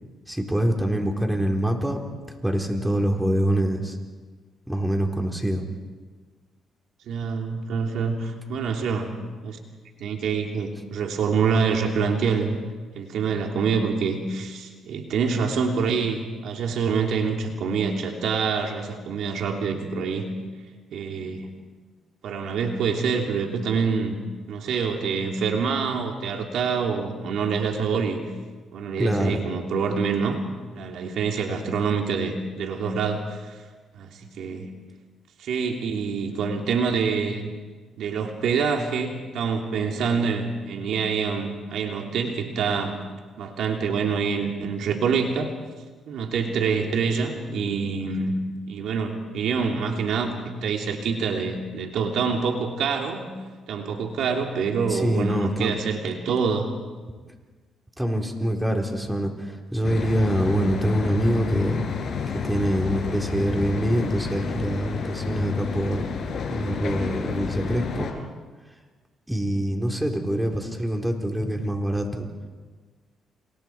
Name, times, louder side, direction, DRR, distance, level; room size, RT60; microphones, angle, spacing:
voice 1, 0.3-2.0 2.4-4.0 4.7-5.6 29.0-29.4 54.9-55.7 58.0-61.9 62.4-66.1 66.5-68.3 69.3-72.3, right 1 dB, 5° right, 2 dB, 4.1 m, -25 dB
voice 2, 7.1-9.1 9.4-9.6 10.0-12.5 12.9-20.3 20.9-21.5 22.2-24.1 24.5-28.2 28.7-30.4 30.7-33.5 33.9-34.7 35.4-37.5 38.0-42.9 43.4-45.5 46.1-48.4 48.7-53.3 53.7-56.7, right 5 dB, 75° right, 2 dB, 3.0 m, -26 dB
sound 1, 59.8-68.1, left 6 dB, 60° left, 4.9 m, -30 dB
30.0 x 28.5 x 4.7 m, 1.4 s
cardioid pair, 90°, 0 cm